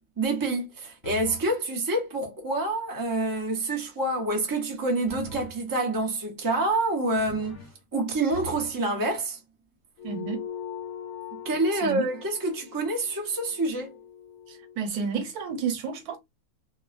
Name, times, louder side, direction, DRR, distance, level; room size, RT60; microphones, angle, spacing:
voice 1, 0.2-7.6 7.9-9.4 11.3-13.9, right 2 dB, 20° right, 0.6 m, -27 dB
sound 1, 1.0-1.6 5.1-5.6 7.1-7.8 8.3-8.8, right 3 dB, 60° left, 1.1 m, -42 dB
sound 2, 10.0-14.8, left 9 dB, 85° left, 1.1 m, -41 dB
voice 2, 10.0-10.4 11.8-12.0 14.5-16.2, right 6 dB, 90° right, 1.3 m, -31 dB
3.1 x 2.1 x 2.4 m
omnidirectional pair, 1.5 m